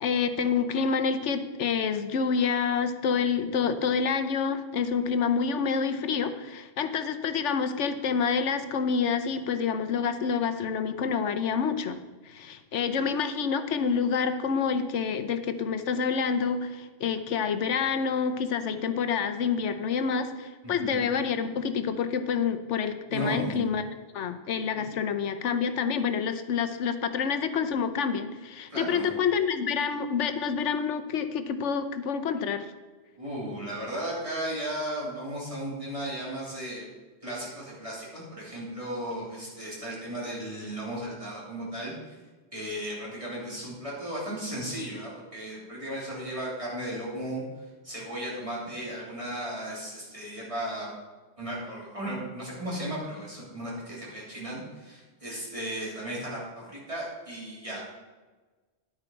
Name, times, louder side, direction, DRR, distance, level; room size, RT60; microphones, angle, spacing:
voice 1, 0.0-23.8 24.1-32.7, left 6 dB, 85° left, 9 dB, 1.1 m, -28 dB
voice 2, 20.6-21.0 23.1-23.6 24.8-24.9 28.7-29.1 33.2-36.8 37.2-42.2 42.5-47.4 47.8-50.9 51.4-57.8, right 1 dB, 30° right, -6 dB, 3.3 m, -35 dB
10.5 x 9.1 x 4.5 m, 1.3 s
omnidirectional pair, 1.2 m